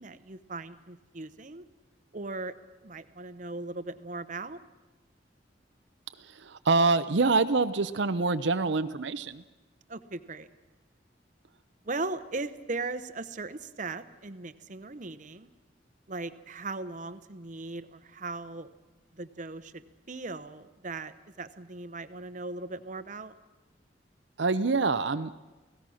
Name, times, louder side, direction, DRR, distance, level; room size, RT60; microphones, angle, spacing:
voice 1, 0.0-1.7 2.1-2.6 2.8-4.6 9.9-10.5 11.8-15.5 16.1-18.7 19.1-23.3, right 3 dB, 40° right, 12 dB, 0.9 m, -38 dB
voice 2, 6.4-9.4 24.4-25.3, right 3 dB, 75° right, 10 dB, 0.7 m, -25 dB
29.0 x 17.5 x 6.3 m, 1.2 s
head